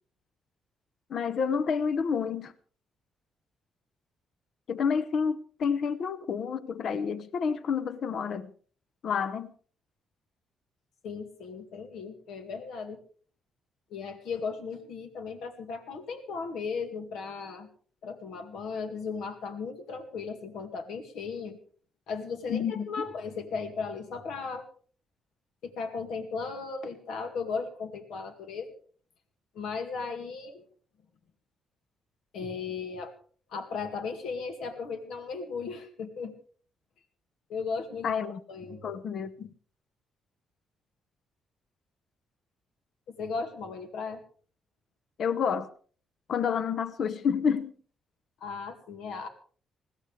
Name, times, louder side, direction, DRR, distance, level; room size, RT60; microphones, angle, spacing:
voice 1, 1.1-2.5 4.7-8.5 9.0-9.5 22.5-22.9 38.0-38.4 38.8-39.5 45.2-45.7 46.3-47.7, left 6 dB, 60° left, 0.9 m, -29 dB
voice 2, 11.0-13.0 13.9-17.7 18.0-21.6 22.1-24.7 25.6-28.7 29.5-30.6 32.3-33.1 33.5-36.3 37.5-38.1 38.5-38.9 43.1-44.2 48.4-49.3, left 5 dB, 80° left, 2.2 m, -36 dB
20.5 x 16.5 x 3.4 m
cardioid pair, 90°, 0 cm